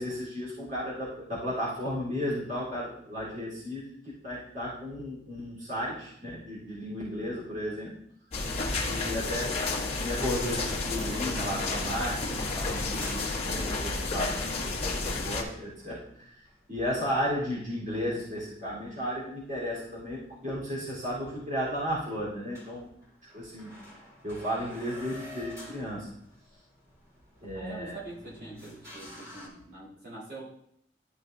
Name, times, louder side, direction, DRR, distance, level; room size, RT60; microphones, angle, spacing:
voice 1, 0.0-8.0 8.8-22.9 23.3-23.7 24.2-26.1 27.4-28.0, equal, 45° right, -8 dB, 3.7 m, -34 dB
sound 1, 8.3-15.4, left 3 dB, 35° left, 1.6 m, -31 dB
sound 2, 10.2-18.4 18.7-18.8 19.3-19.4 20.4-20.5 20.7-20.8 21.2-21.3 21.7-22.0 22.3-22.4 22.5-29.5, left 1 dB, 20° right, 3.4 m, -48 dB
voice 2, 27.5-30.4, right 2 dB, 65° right, -7 dB, 3.8 m, -44 dB
12.5 x 6.2 x 2.7 m, 0.70 s
head